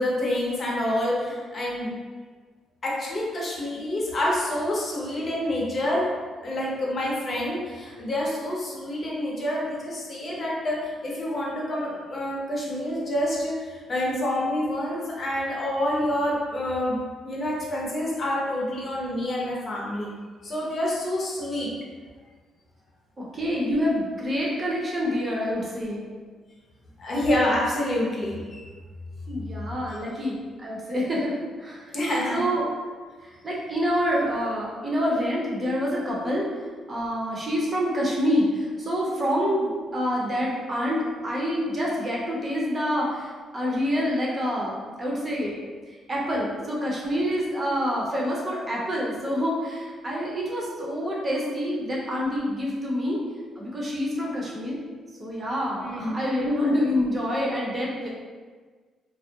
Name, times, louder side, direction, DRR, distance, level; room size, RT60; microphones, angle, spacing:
voice 1, 0.0-1.9 2.8-6.1 6.4-17.0 17.2-20.2 20.4-21.7 27.0-28.6 31.9-32.4 55.8-56.2, left 1 dB, 45° left, -4 dB, 0.7 m, -27 dB
voice 2, 23.2-26.0 29.3-32.0 32.3-32.6 33.2-36.5 36.9-45.5 46.1-53.2 53.6-54.8 55.2-58.1, equal, 30° right, -4 dB, 0.7 m, -27 dB
2.4 x 2.0 x 2.8 m, 1.5 s
cardioid pair, 90°, 0 cm